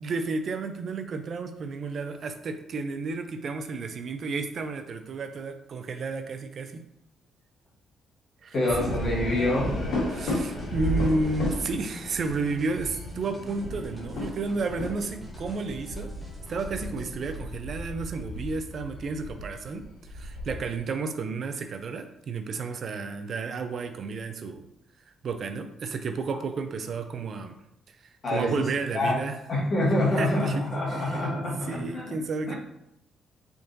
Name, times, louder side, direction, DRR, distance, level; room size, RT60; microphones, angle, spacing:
voice 1, 0.0-6.8 8.4-9.0 10.1-16.1 16.5-19.8 20.1-24.7 25.2-27.6 27.9-29.4 30.2-31.2 31.7-32.5, right 3 dB, 55° right, 7 dB, 0.4 m, -32 dB
voice 2, 8.5-9.8 28.2-28.5 28.9-29.2 29.5-32.1 32.5-32.6, left 1 dB, 45° left, -5 dB, 1.5 m, -26 dB
sound 1, 8.7-20.8, equal, 80° left, 1.4 m, -34 dB
sound 2, 10.0-17.4, left 2 dB, 5° right, 1.1 m, -46 dB
3.6 x 3.5 x 2.6 m, 0.78 s
cardioid pair, 90°, 0 cm